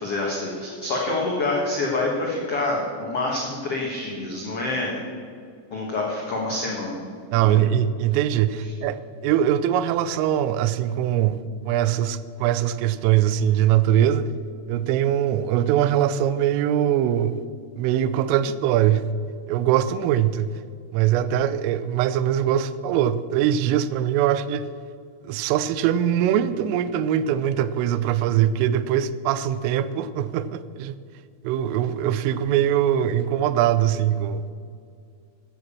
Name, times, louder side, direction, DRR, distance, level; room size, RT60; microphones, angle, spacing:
voice 1, 0.0-5.0 5.7-7.0 7.4-7.6, left 2 dB, 75° left, -3 dB, 1.3 m, -27 dB
voice 2, 7.3-14.3 14.7-17.4 17.8-19.1 19.5-20.6 20.9-24.7 25.2-30.9 31.4-34.4, right 10 dB, 90° right, 15 dB, 3.3 m, -22 dB
14.0 x 9.2 x 7.0 m, 2.3 s
omnidirectional pair, 5.7 m